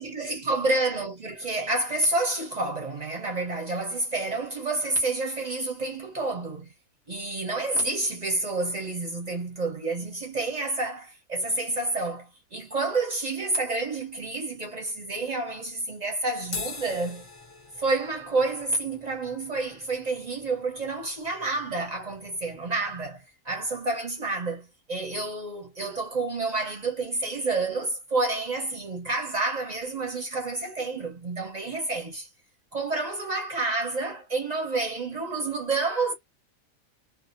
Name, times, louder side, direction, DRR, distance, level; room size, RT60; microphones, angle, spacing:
voice 1, 0.0-6.7 7.1-17.3 17.8-32.3 32.7-36.1, right 2 dB, 40° right, 0.7 m, -29 dB
sound 1, 16.4-23.0, left 4 dB, 35° left, 0.5 m, -43 dB
2.6 x 2.5 x 2.5 m
omnidirectional pair, 1.4 m